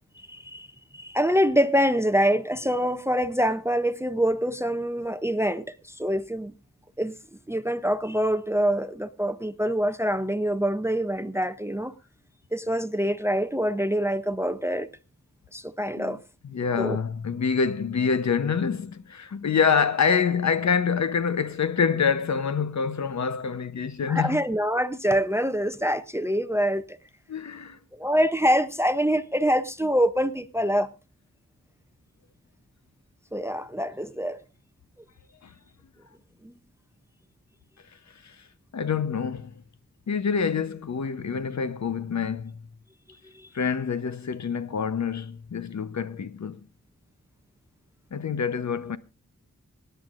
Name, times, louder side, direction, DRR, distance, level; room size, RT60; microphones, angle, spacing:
voice 1, 0.2-0.7 0.9-6.5 7.0-7.2 7.5-11.9 12.5-14.9 15.5-16.2 16.7-17.0 24.1-27.0 27.9-30.9 33.3-34.4 36.4-36.5 43.3-43.5, equal, 10° right, 0.5 m, -25 dB
voice 2, 16.4-24.4 27.3-27.8 35.4-35.5 38.2-38.4 38.7-39.6 40.1-42.7 43.5-46.7 48.1-49.0, left 6 dB, 60° left, 0.8 m, -26 dB
25.0 x 10.0 x 2.5 m
wide cardioid pair, 100°, 32 cm